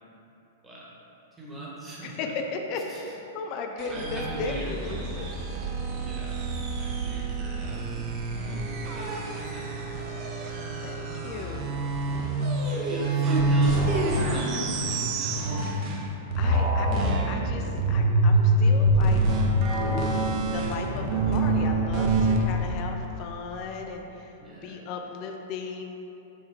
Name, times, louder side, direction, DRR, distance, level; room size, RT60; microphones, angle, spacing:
voice 1, 1.4-2.3 2.7-3.0 3.9-4.8 5.9-6.4 6.8-7.8 8.9-9.9 12.7-15.8 24.4-24.8, right 1 dB, 15° right, -6 dB, 1.0 m, -41 dB
voice 2, 2.0-5.3 10.8-11.8 15.8-19.2 20.5-25.8, left 4 dB, 45° left, 3 dB, 0.3 m, -36 dB
sound 1, 3.8-16.1 16.3-22.4, right 2 dB, 45° right, 0.5 m, -26 dB
5.4 x 2.3 x 3.2 m, 3.0 s
hypercardioid pair, 105°, 0 cm